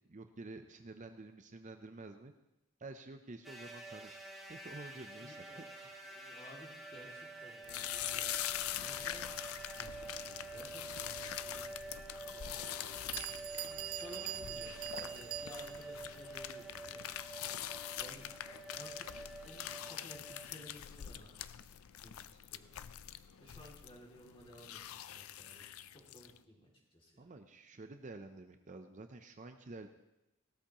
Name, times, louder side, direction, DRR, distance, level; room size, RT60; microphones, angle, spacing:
voice 1, 0.0-2.3 2.8-4.2 4.5-6.0 27.2-29.9, right 2 dB, 35° right, 7 dB, 0.6 m, -50 dB
sound 1, 3.4-20.5, right 2 dB, ahead, 1.4 m, -48 dB
voice 2, 5.2-5.8 6.1-10.9 11.4-11.7 12.3-17.0 18.0-18.2 18.7-21.6 22.0-22.7 23.4-24.8 25.0-27.2, equal, 25° left, -2 dB, 2.5 m, -56 dB
sound 2, 7.6-26.4, left 11 dB, 80° left, 0.4 m, -44 dB
Bell, 13.1-15.9, right 16 dB, 80° right, 0.3 m, -43 dB
17.5 x 13.0 x 3.0 m, 0.92 s
head